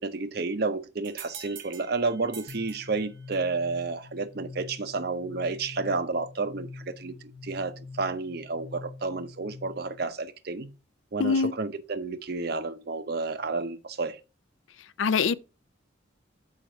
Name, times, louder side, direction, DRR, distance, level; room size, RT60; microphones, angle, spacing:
voice 1, 0.0-10.7 11.1-14.2, right 3 dB, 55° right, 0.6 m, -31 dB
sound 1, 1.0-3.6, right 7 dB, 80° right, 1.3 m, -46 dB
sound 2, 2.5-10.0, left 3 dB, 45° left, 0.7 m, -45 dB
voice 2, 11.2-11.5 15.0-15.3, left 5 dB, 85° left, 0.5 m, -23 dB
6.5 x 5.0 x 4.4 m
head